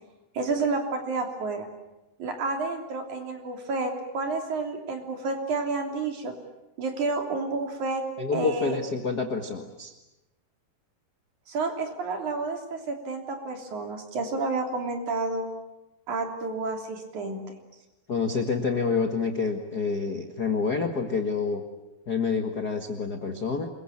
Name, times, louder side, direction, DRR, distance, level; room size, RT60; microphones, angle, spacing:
voice 1, 0.3-1.7 2.2-6.3 6.8-8.0 8.3-8.8 11.5-15.5 16.1-17.4, right 3 dB, 50° right, 4 dB, 4.4 m, -30 dB
voice 2, 8.2-9.9 18.1-21.6 22.1-23.7, left 4 dB, 55° left, 5 dB, 1.1 m, -28 dB
27.0 x 22.5 x 8.7 m, 0.96 s
omnidirectional pair, 4.8 m